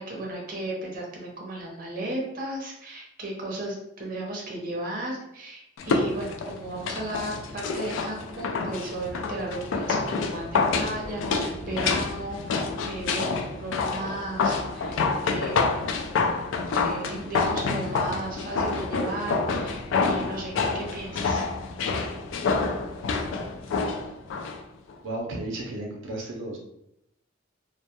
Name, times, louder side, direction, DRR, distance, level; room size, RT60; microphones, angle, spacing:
voice 1, 0.0-13.2 13.5-15.0 15.2-15.8 16.7-21.5, right 1 dB, 45° right, -2 dB, 0.6 m, -35 dB
sound 1, 5.8-24.6 24.9-25.0, left 4 dB, 80° left, 0.3 m, -28 dB
voice 2, 25.0-26.6, right 2 dB, 85° right, -1 dB, 0.5 m, -33 dB
2.1 x 2.1 x 2.8 m, 0.80 s
head